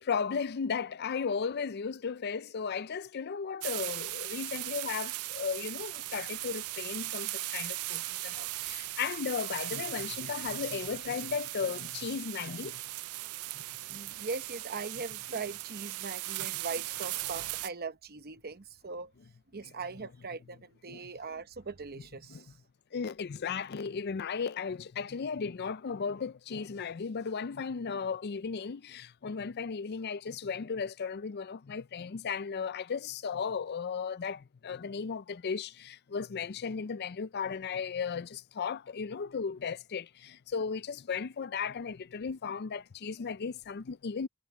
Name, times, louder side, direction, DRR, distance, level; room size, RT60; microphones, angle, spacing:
voice 1, 0.0-12.8 13.9-14.0 20.9-21.1 22.3-22.4 22.9-44.3, left 6 dB, 45° left, 0.4 m, -35 dB
sound 1, 3.6-17.7, right 18 dB, 75° right, 0.4 m, -38 dB
voice 2, 13.9-19.1 19.5-22.6, right 4 dB, 45° right, 0.9 m, -40 dB
head